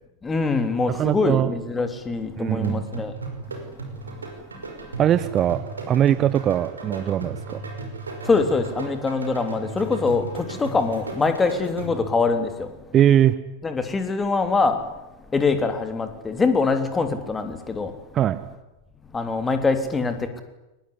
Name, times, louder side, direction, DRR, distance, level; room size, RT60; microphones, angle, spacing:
voice 1, 0.2-3.2 8.2-12.7 13.6-14.9 15.3-17.9 19.1-20.4, left 4 dB, 15° left, 8 dB, 3.3 m, -23 dB
voice 2, 0.9-1.5 2.4-2.8 5.0-7.6 12.9-13.3 18.1-18.4, right 11 dB, 30° right, 13 dB, 1.2 m, -21 dB
sound 1, 2.6-12.2, right 3 dB, 75° right, 5.5 m, -35 dB
23.0 x 20.0 x 9.8 m, 0.98 s
figure-of-eight pair, 90°, 0 cm